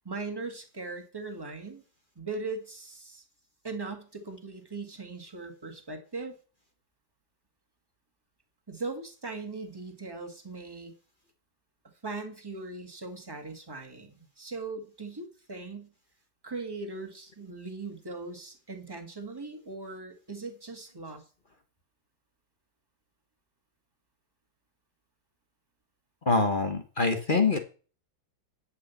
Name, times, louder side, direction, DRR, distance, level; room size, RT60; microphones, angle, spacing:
voice 1, 0.0-1.8 2.1-3.2 3.6-6.4 8.7-10.9 12.0-15.9 16.4-21.2, right 3 dB, 10° right, 5 dB, 1.6 m, -39 dB
voice 2, 26.3-27.6, left 3 dB, 35° left, 7 dB, 0.8 m, -25 dB
11.0 x 5.5 x 7.0 m, 0.38 s
omnidirectional pair, 2.2 m